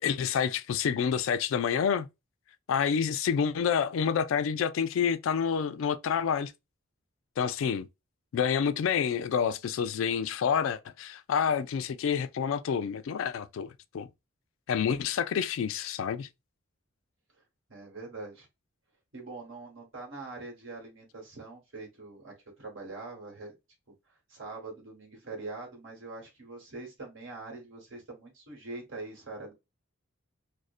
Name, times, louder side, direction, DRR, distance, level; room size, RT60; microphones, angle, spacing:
voice 1, 0.0-2.1 2.7-6.5 7.4-7.9 8.3-14.1 14.7-16.3, left 7 dB, 75° left, 0.3 m, -28 dB
voice 2, 17.7-18.5 19.1-23.6 24.3-29.5, right 3 dB, 70° right, 1.2 m, -43 dB
2.5 x 2.1 x 2.4 m
head